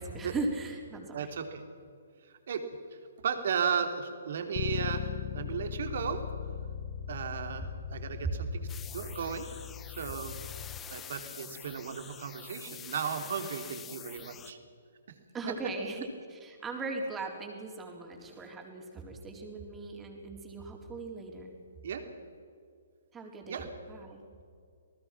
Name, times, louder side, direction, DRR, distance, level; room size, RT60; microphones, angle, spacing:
voice 1, 0.0-1.3 7.6-7.7 8.2-8.3 15.3-21.5 23.1-24.2, right 3 dB, 15° right, 2 dB, 4.1 m, -38 dB
voice 2, 1.1-1.6 2.2-2.6 3.2-6.2 7.1-9.5 10.0-10.3 10.9-14.6 15.1-15.2 15.5-15.6 21.8-22.0 23.5-23.7, right 7 dB, 60° right, 6 dB, 3.1 m, -35 dB
Bass guitar, 4.5-10.8, left 10 dB, 40° left, 0.9 m, -39 dB
sound 1, 8.7-14.5, left 9 dB, 15° left, 1.0 m, -46 dB
28.5 x 19.0 x 6.1 m, 2.3 s
hypercardioid pair, 135°, 0 cm